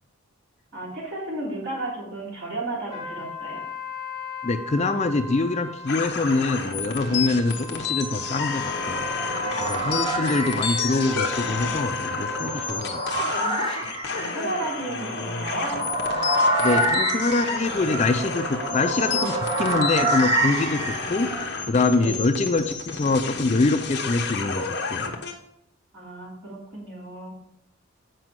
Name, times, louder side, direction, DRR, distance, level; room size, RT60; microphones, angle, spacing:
voice 1, 0.7-3.7 9.9-10.6 14.1-15.8 22.0-22.2 25.9-27.3, right 2 dB, 55° right, -5 dB, 3.1 m, -33 dB
sound 1, 2.9-12.8, left 3 dB, 70° right, 2.0 m, -35 dB
voice 2, 4.4-9.1 9.6-13.3 16.6-25.1, left 3 dB, 30° left, 8 dB, 0.4 m, -25 dB
sound 2, 5.9-25.3, left 5 dB, 55° left, 1.0 m, -31 dB
sound 3, 8.0-21.5, right 1 dB, 25° right, 1.6 m, -28 dB
7.7 x 5.0 x 4.7 m, 0.78 s
head